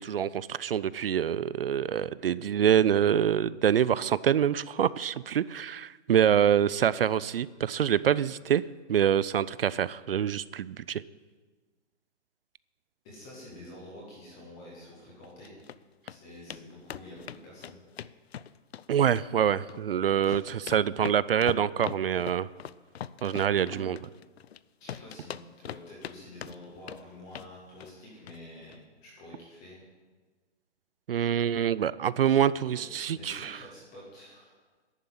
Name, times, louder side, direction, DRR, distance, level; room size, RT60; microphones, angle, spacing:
voice 1, 0.0-8.6 8.9-11.0 18.9-22.5 23.2-24.0 31.1-33.6, right 9 dB, 55° right, 19 dB, 0.5 m, -26 dB
voice 2, 13.0-15.6 16.1-17.8 20.2-20.3 23.4-23.8 24.8-29.8 32.8-34.5, left 1 dB, 5° left, -4 dB, 0.4 m, -48 dB
sound 1, 15.2-15.8 16.1-16.2 16.5-16.6 16.9-18.8 19.1-19.8 20.1-24.6 24.9-26.1 26.4-27.0 27.3-27.5 27.8-28.0 28.3-28.4 28.7-28.8, left 9 dB, 60° left, 0.6 m, -41 dB
11.0 x 9.5 x 9.2 m, 1.4 s
hypercardioid pair, 165°, 35 cm